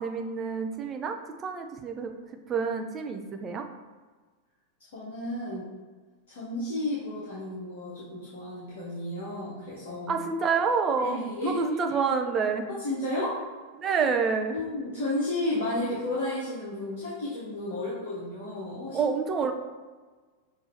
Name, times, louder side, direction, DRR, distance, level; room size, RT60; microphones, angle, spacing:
voice 1, 0.0-2.1 2.5-3.7 10.1-12.7 13.8-14.6 18.9-19.5, right 5 dB, 25° right, 5 dB, 0.5 m, -28 dB
voice 2, 4.9-5.7 6.3-10.2 11.0-11.6 12.7-13.4 14.5-19.1, left 1 dB, 55° left, -7 dB, 1.1 m, -32 dB
6.1 x 2.6 x 3.3 m, 1.4 s
figure-of-eight pair, 90°, 0 cm